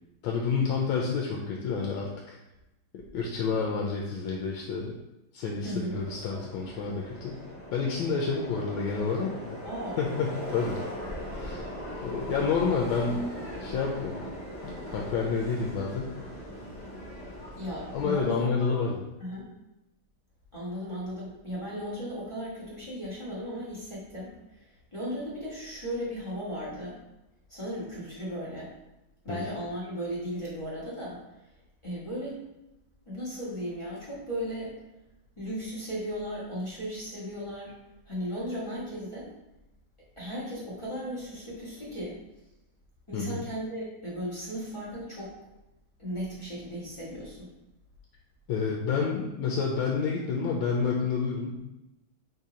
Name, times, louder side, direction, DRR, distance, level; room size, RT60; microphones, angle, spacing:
voice 1, 0.2-2.4 3.1-5.0 5.3-7.4 7.7-9.6 10.0-10.8 11.3-11.8 12.0-13.2 13.5-14.2 14.6-16.1 17.9-19.1 29.3-29.4 43.1-43.5 48.5-51.6, left 5 dB, 75° left, -1 dB, 1.3 m, -29 dB
voice 2, 5.6-6.0 9.6-10.0 17.6-18.5 19.2-19.5 20.5-24.3 24.9-27.0 27.5-28.7 29.2-31.2 31.8-32.4 33.1-34.7 35.4-37.7 38.1-39.3 40.2-42.2 43.1-45.3 46.0-47.5, equal, 20° left, -8 dB, 0.9 m, -36 dB
Subway metro underground, 5.9-18.2, equal, 30° right, 0.9 m, -39 dB
3.9 x 2.8 x 4.8 m, 0.95 s
omnidirectional pair, 2.3 m